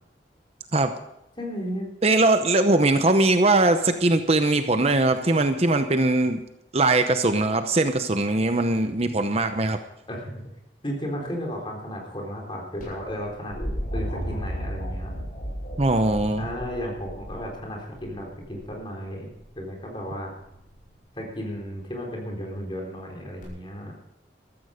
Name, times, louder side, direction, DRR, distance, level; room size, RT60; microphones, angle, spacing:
voice 1, 1.4-1.9 10.1-10.4 10.8-13.6 13.9-15.1 16.4-19.3 19.6-20.3 21.2-23.9, equal, 30° left, 0 dB, 4.0 m, -34 dB
voice 2, 2.0-6.4 6.7-9.8 15.8-16.5, right 2 dB, 35° right, 8 dB, 0.8 m, -21 dB
sound 1, 12.8-18.7 20.3-20.8 23.4-23.5, equal, 50° left, 7.0 m, -34 dB
15.0 x 14.0 x 5.1 m, 0.83 s
head